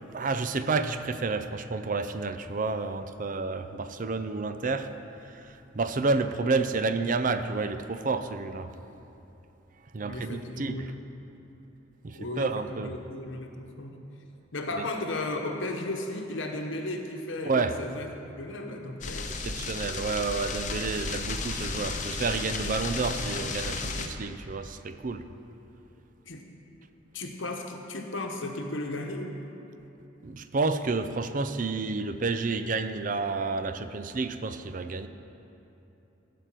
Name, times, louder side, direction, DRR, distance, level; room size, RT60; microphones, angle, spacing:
voice 1, 0.1-8.7 9.9-10.9 12.0-12.9 14.8-14.9 17.4-17.8 19.4-25.3 30.2-35.1, right 3 dB, 45° right, 10 dB, 0.5 m, -30 dB
voice 2, 10.0-11.0 12.1-14.0 14.5-18.1 18.4-19.3 26.3-26.5 27.1-29.3, left 2 dB, 80° left, 3 dB, 1.1 m, -35 dB
sound 1, 19.0-24.1, left 4 dB, 40° left, 0.8 m, -33 dB
15.0 x 5.1 x 7.5 m, 3.0 s
head